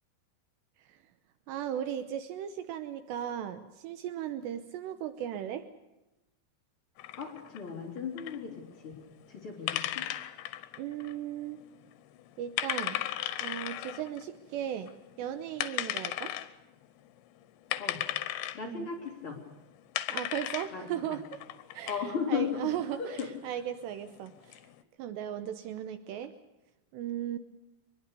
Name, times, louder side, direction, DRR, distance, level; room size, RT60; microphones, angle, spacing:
voice 1, 1.5-5.7 10.8-11.6 12.4-13.0 13.4-14.9 15.2-16.3 18.6-18.9 20.1-21.4 21.7-24.6 25.0-26.3 26.9-27.4, right 10 dB, 80° right, 10 dB, 3.0 m, -37 dB
sound 1, 7.0-24.8, left 13 dB, 85° left, 3.4 m, -37 dB
voice 2, 7.2-8.9 9.3-10.0 17.8-18.0 18.5-19.4 20.7-21.2 21.8-22.7 23.0-23.3, left 7 dB, 30° left, 0 dB, 4.1 m, -36 dB
24.0 x 21.0 x 6.8 m, 1.0 s
omnidirectional pair, 5.1 m